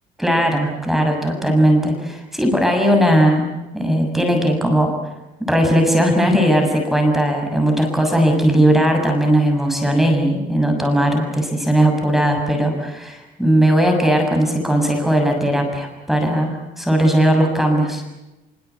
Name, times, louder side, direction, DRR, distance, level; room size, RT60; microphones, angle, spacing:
voice 1, 0.2-3.5 3.7-4.9 5.5-18.0, right 1 dB, ahead, 2 dB, 6.9 m, -17 dB
25.5 x 24.0 x 8.4 m, 1.0 s
cardioid pair, 110°, 17 cm